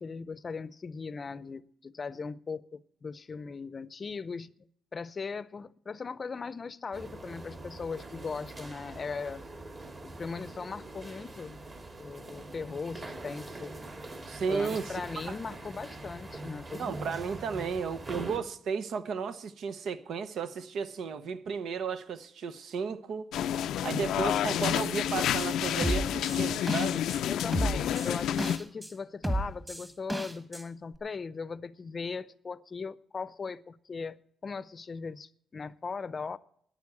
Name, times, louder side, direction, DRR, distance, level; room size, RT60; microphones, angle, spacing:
voice 1, 0.0-4.5 4.9-9.5 10.0-11.6 12.0-13.7 14.5-17.0 27.3-36.4, left 5 dB, 35° left, 0.6 m, -39 dB
sound 1, 6.9-18.4, right 2 dB, 35° right, 2.5 m, -43 dB
voice 2, 14.3-14.9 15.3-15.4 16.7-23.3 23.8-27.0, right 6 dB, 75° right, 0.9 m, -34 dB
sound 2, 23.3-28.6, left 10 dB, 85° left, 0.4 m, -29 dB
sound 3, 25.4-25.5 25.8-27.2 27.5-28.9 29.2-30.6 30.9-31.0, right 1 dB, 10° right, 1.4 m, -32 dB
10.5 x 9.4 x 8.4 m
cardioid pair, 100°, 0 cm